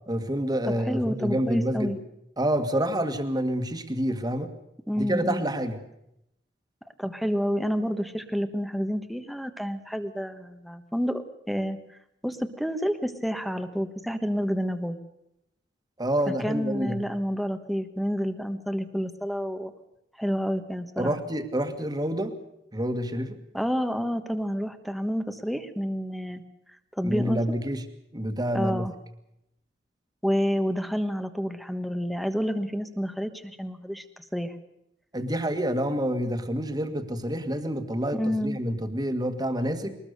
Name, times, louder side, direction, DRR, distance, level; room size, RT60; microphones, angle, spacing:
voice 1, 0.1-1.9 2.4-4.5 5.0-5.8 16.0-17.0 21.0-22.3 22.7-23.4 27.0-27.8 28.1-28.9 35.1-40.0, equal, 20° right, 8 dB, 1.9 m, -28 dB
voice 2, 0.6-2.0 4.9-5.5 7.0-11.8 12.2-15.0 16.4-19.7 20.2-21.1 23.5-26.4 26.9-27.4 28.5-28.9 30.2-34.0 34.3-34.5 38.1-38.6, equal, ahead, 9 dB, 1.3 m, -29 dB
22.5 x 20.0 x 6.7 m, 0.81 s
head